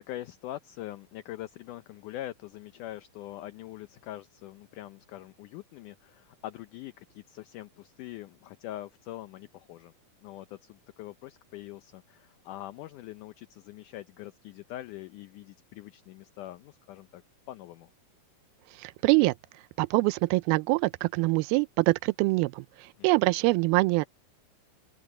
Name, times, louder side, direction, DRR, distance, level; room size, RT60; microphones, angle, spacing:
voice 1, 0.0-9.9 10.2-17.2 17.5-17.9 23.0-23.1, left 14 dB, 75° left, 1.9 m, -43 dB
voice 2, 18.8-19.3 19.8-24.1, right 23 dB, 90° right, 2.5 m, -24 dB
open air
omnidirectional pair, 4.3 m